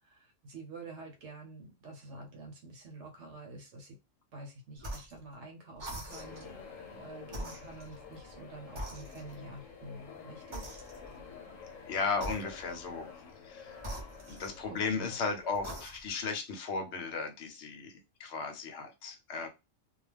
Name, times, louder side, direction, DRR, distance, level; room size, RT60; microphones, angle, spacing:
voice 1, 0.0-4.0 4.3-10.8 14.7-15.1, right 2 dB, 65° right, 2 dB, 1.0 m, -48 dB
sound 1, 4.8-5.2 5.8-6.5 7.3-8.4 8.8-9.5 10.5-11.3 12.1-12.9 13.8-14.9 15.5-16.2, right 1 dB, 30° right, 0.7 m, -43 dB
sound 2, 6.1-15.8, left 6 dB, 85° left, 1.1 m, -50 dB
voice 2, 11.9-13.1 13.4-13.8 14.3-19.5, left 4 dB, 65° left, 5 dB, 0.9 m, -35 dB
2.3 x 2.3 x 3.3 m, 0.26 s
omnidirectional pair, 1.3 m